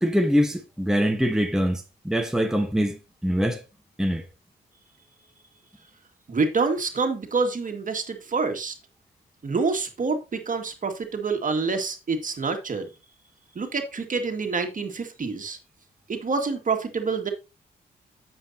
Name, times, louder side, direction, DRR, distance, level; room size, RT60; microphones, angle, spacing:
voice 1, 0.0-3.0 3.2-3.6 4.0-4.2, equal, 5° right, 1.2 m, -23 dB
voice 2, 6.3-8.7 9.4-12.9 13.6-15.6 16.1-17.3, right 4 dB, 45° right, 2.0 m, -27 dB
9.9 x 8.0 x 2.8 m
cardioid pair, 70°, 18 cm